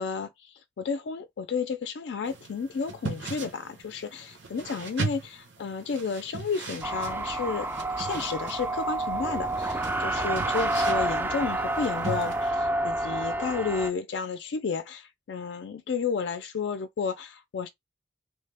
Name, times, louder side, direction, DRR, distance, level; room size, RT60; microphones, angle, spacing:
voice 1, 0.0-7.7 8.0-17.7, left 5 dB, 65° left, 0.4 m, -32 dB
sound 1, 2.2-12.5, right 3 dB, 85° right, 1.0 m, -39 dB
sound 2, 6.8-13.9, right 2 dB, 10° right, 0.3 m, -29 dB
3.1 x 2.1 x 3.3 m
head